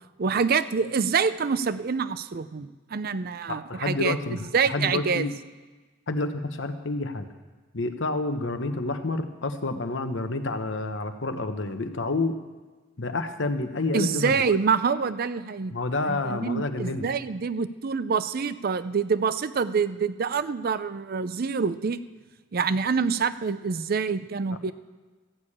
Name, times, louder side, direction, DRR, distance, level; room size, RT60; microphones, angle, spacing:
voice 1, 0.2-5.3 13.9-15.7 16.1-22.0 22.5-24.7, right 5 dB, 50° right, 15 dB, 0.5 m, -26 dB
voice 2, 3.5-5.4 6.1-7.2 7.7-12.4 13.0-14.3 15.7-17.1, left 2 dB, 65° left, 8 dB, 1.0 m, -29 dB
14.5 x 6.6 x 8.6 m, 1.3 s
head